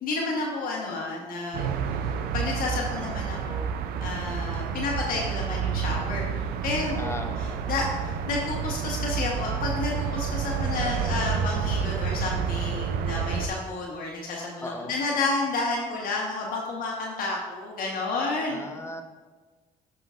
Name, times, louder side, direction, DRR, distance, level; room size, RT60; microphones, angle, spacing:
voice 1, 0.0-3.7 4.0-18.7, left 3 dB, 65° left, -2 dB, 1.3 m, -31 dB
sound 1, 1.5-13.5, right 7 dB, 75° right, 0.5 m, -29 dB
voice 2, 7.0-7.6 14.6-14.9 18.5-19.0, left 1 dB, 15° left, 5 dB, 0.9 m, -37 dB
8.9 x 5.8 x 2.5 m, 1.3 s
supercardioid pair, 75°, 16 cm